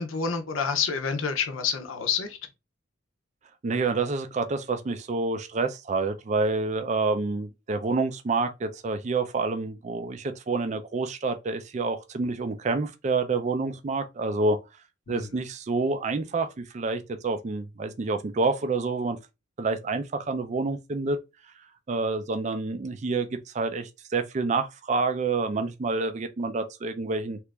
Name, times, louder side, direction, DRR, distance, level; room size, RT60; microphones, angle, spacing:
voice 1, 0.0-2.4 15.1-15.2, left 6 dB, 80° left, 0.6 m, -28 dB
voice 2, 3.6-14.6 15.1-19.2 19.6-21.2 21.9-23.3 23.5-27.4, right 3 dB, 35° right, 0.4 m, -28 dB
2.9 x 2.4 x 3.3 m
head